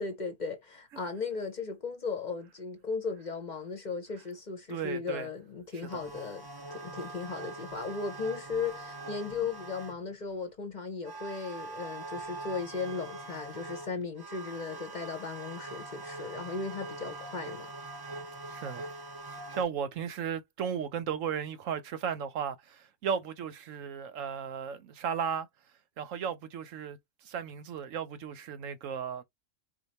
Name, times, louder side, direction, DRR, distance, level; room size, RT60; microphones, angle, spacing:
voice 1, 0.0-6.4 6.7-17.7, left 4 dB, 40° left, 0.9 m, -36 dB
voice 2, 4.7-5.3 18.5-18.9 19.5-25.5 26.0-27.0 27.2-29.2, right 7 dB, 75° right, 1.1 m, -35 dB
sound 1, 5.9-10.1 11.0-19.6, right 2 dB, 25° right, 0.6 m, -43 dB
5.0 x 2.3 x 4.1 m
omnidirectional pair, 1.4 m